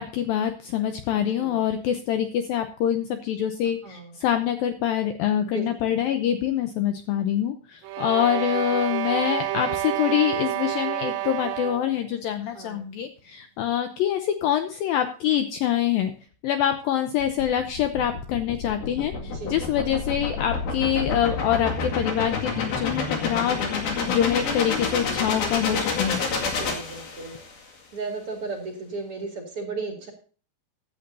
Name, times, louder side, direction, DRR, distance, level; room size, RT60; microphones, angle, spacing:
voice 1, 0.0-16.1 16.4-23.6 24.1-26.2, left 10 dB, 80° left, 7 dB, 2.1 m, -25 dB
voice 2, 3.8-4.2 5.5-5.9 12.5-12.8 19.3-19.6 23.9-24.2 26.5-30.1, right 3 dB, 40° right, 2 dB, 2.5 m, -36 dB
sound 1, 7.8-12.0, right 13 dB, 85° right, 2.8 m, -29 dB
sound 2, 17.2-27.5, left 4 dB, 65° left, 3.8 m, -29 dB
15.5 x 10.5 x 2.7 m, 0.39 s
omnidirectional pair, 4.9 m